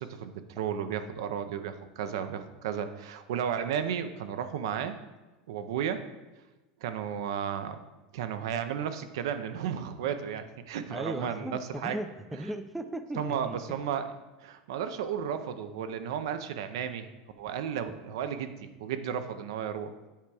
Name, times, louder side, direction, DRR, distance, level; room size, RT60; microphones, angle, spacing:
voice 1, 0.0-5.0 5.5-6.0 6.8-7.8 8.1-12.0 13.2-14.1 14.4-17.1 17.4-19.9, right 8 dB, 80° right, 10 dB, 0.6 m, -33 dB
voice 2, 10.9-13.6, right 1 dB, ahead, 8 dB, 0.3 m, -37 dB
8.5 x 3.5 x 4.8 m, 1.1 s
supercardioid pair, 150°, 2 cm